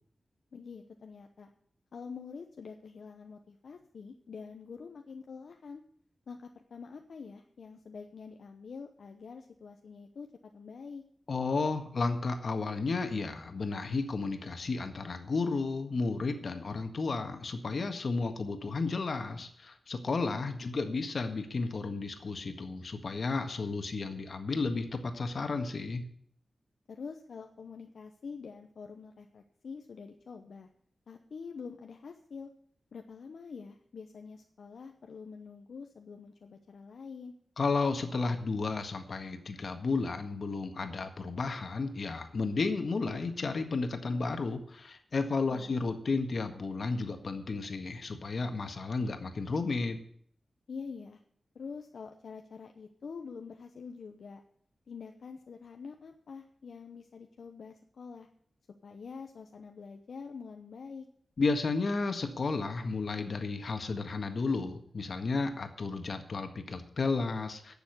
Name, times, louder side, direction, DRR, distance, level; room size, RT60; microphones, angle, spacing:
voice 1, 0.5-1.5 1.9-5.8 6.3-10.3 10.5-11.0 20.6-21.1 26.9-30.7 31.1-32.5 32.9-37.3 45.5-45.7 50.7-51.2 51.5-54.4 54.9-58.3 58.8-61.1, left 5 dB, 80° left, 4 dB, 0.9 m, -46 dB
voice 2, 11.3-26.1 37.6-50.0 61.4-67.7, left 3 dB, 65° left, 6 dB, 1.6 m, -33 dB
11.0 x 7.0 x 9.4 m, 0.63 s
cardioid pair, 65°, 0 cm